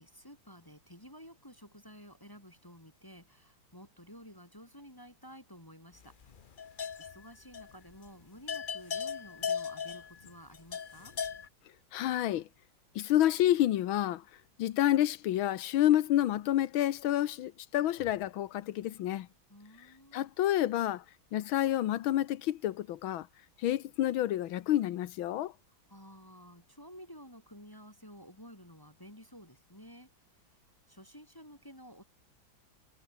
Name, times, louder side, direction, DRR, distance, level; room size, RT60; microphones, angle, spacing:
voice 1, 0.0-6.1 7.0-11.1 19.5-20.3 25.9-30.1 30.9-32.0, equal, 10° left, 3.3 m, -52 dB
sound 1, 6.2-7.3 7.5-7.7 8.1-8.2 8.5-11.5, left 7 dB, 65° left, 0.5 m, -37 dB
voice 2, 11.9-12.5 12.9-14.2 14.6-19.3 20.1-21.0 21.3-23.3 23.6-25.5, left 13 dB, 85° left, 1.7 m, -29 dB
omnidirectional pair, 2.2 m